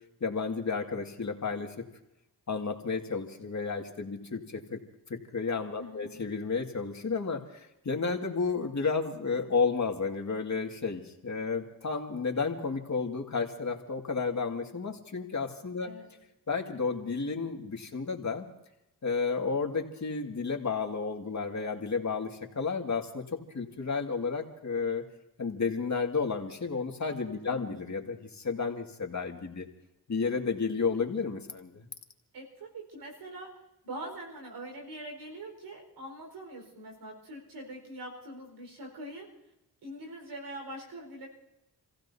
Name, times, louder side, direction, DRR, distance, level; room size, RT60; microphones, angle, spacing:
voice 1, 0.2-1.9 2.5-4.8 5.1-15.9 16.5-18.5 19.0-25.0 25.4-29.7 30.1-31.9, left 4 dB, 45° left, 3 dB, 2.1 m, -32 dB
voice 2, 5.8-6.2 15.8-16.1 27.4-27.8 32.3-33.6 33.8-39.3 39.8-41.3, right 1 dB, 90° right, 1 dB, 4.8 m, -43 dB
30.0 x 15.5 x 2.8 m, 0.88 s
cardioid pair, 55°, 39 cm